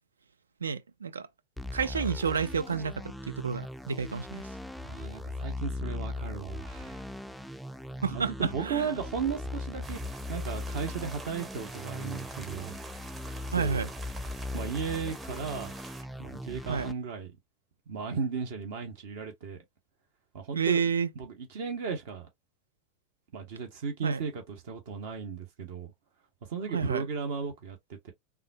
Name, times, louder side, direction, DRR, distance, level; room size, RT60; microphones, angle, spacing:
voice 1, 0.6-1.3 1.7-4.5 8.0-8.9 13.5-13.9 16.7-16.9 20.5-21.1 24.0-24.2 26.7-27.1, right 6 dB, 80° right, 0.3 m, -30 dB
sound 1, 1.6-16.9, left 2 dB, ahead, 0.3 m, -39 dB
voice 2, 4.8-7.1 8.1-10.0 10.3-12.8 13.5-13.8 14.5-15.7 16.2-17.3 17.9-19.6 20.3-20.8 21.2-22.3 23.3-25.9 26.5-28.1, right 6 dB, 60° right, 1.0 m, -35 dB
sound 2, 9.8-16.0, right 3 dB, 20° right, 0.7 m, -46 dB
3.6 x 2.3 x 2.7 m
figure-of-eight pair, 85°, 0 cm